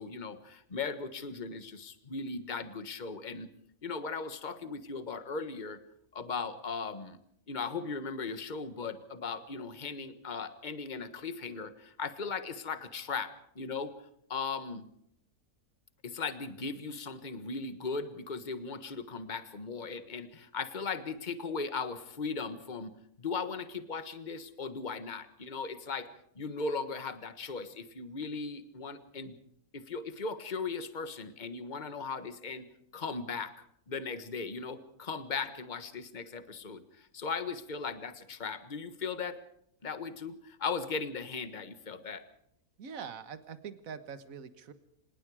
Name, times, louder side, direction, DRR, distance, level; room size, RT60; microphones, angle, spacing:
voice 1, 0.0-3.5 3.8-5.8 6.1-7.2 7.5-13.9 14.3-14.9 16.0-22.9 23.2-26.1 26.3-29.3 29.7-32.7 32.9-33.5 33.9-39.4 39.8-42.2, left 4 dB, 30° left, 11 dB, 1.5 m, -38 dB
voice 2, 42.8-44.7, right 6 dB, 65° right, 12 dB, 1.8 m, -43 dB
26.0 x 20.5 x 4.9 m, 0.72 s
omnidirectional pair, 1.6 m